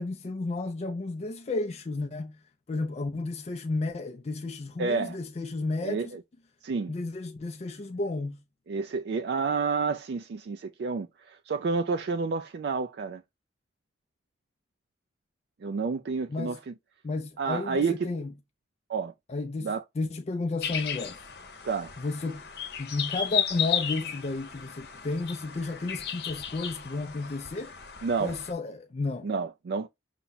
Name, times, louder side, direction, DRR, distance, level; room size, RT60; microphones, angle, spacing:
voice 1, 0.0-2.4 2.7-6.2 6.9-8.4 16.3-16.6 17.0-18.3 19.3-21.2 22.0-22.4 22.8-27.7 28.2-29.3, left 3 dB, 35° left, 0.4 m, -32 dB
voice 2, 4.8-5.2 5.8-6.2 6.6-6.9 8.7-13.2 15.6-16.7 17.4-18.1 18.9-19.1 19.6-19.8 21.7-21.9 28.0-28.4 29.2-29.9, right 4 dB, 60° right, 0.3 m, -30 dB
sound 1, 20.6-28.5, left 9 dB, 60° left, 0.8 m, -34 dB
5.7 x 2.1 x 4.0 m
head